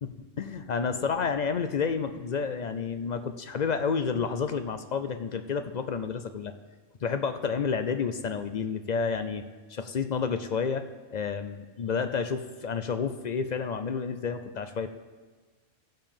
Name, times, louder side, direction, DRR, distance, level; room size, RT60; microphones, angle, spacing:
voice 1, 0.4-6.5 7.0-9.4 9.7-10.9 11.1-14.9, left 5 dB, 60° left, 9 dB, 0.4 m, -30 dB
16.0 x 7.6 x 3.5 m, 1.4 s
omnidirectional pair, 1.3 m